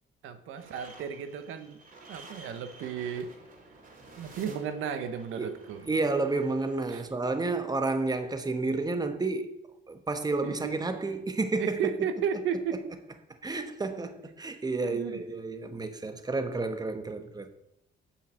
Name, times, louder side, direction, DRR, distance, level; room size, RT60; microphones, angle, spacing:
voice 1, 0.2-1.8 2.1-3.3 4.2-5.9 6.9-7.0 10.4-10.7 11.6-12.8 14.8-15.2, right 7 dB, 85° right, 1.0 m, -34 dB
sound 1, 0.6-7.0, right 2 dB, 45° right, 3.2 m, -52 dB
voice 2, 5.4-9.5 9.9-11.9 13.4-17.5, right 3 dB, 20° right, 1.2 m, -30 dB
8.5 x 5.8 x 7.6 m
cardioid pair, 90°, 20 cm